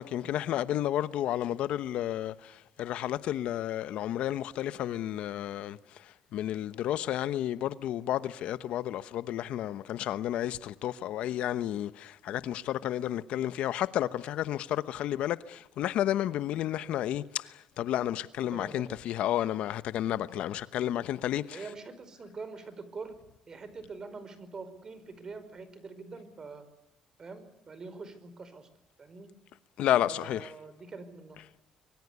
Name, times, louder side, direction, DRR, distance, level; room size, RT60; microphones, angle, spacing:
voice 1, 0.0-21.6 29.8-30.5, left 12 dB, 70° left, 1.0 m, -31 dB
voice 2, 18.5-19.0 21.5-23.1 23.5-26.7 27.2-28.7 29.0-29.3 29.9-31.4, right 4 dB, 35° right, 4.9 m, -44 dB
25.0 x 23.0 x 8.2 m
cardioid pair, 110°, 2 cm